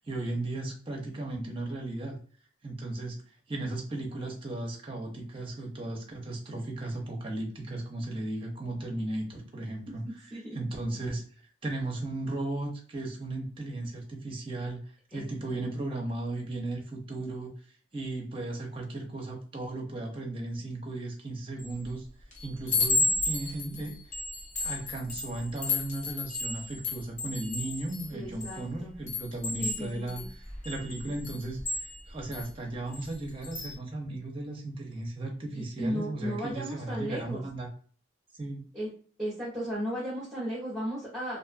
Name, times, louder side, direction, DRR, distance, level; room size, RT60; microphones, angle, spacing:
voice 1, 0.0-2.2 2.6-3.2 3.5-10.1 10.5-11.2 11.6-14.8 15.1-17.5 17.9-22.1 22.4-24.0 24.6-37.7 38.4-38.7, right 2 dB, 25° right, 1 dB, 0.6 m, -36 dB
voice 2, 15.1-15.6 28.1-28.9 29.6-30.3 35.5-37.4 38.7-38.9 39.2-41.4, equal, ahead, -8 dB, 0.8 m, -35 dB
Chime, 21.6-21.9 22.3-28.6 29.1-32.5 32.9-33.1 33.4-33.7, left 3 dB, 35° left, 0.8 m, -33 dB
2.5 x 2.4 x 2.4 m, 0.44 s
head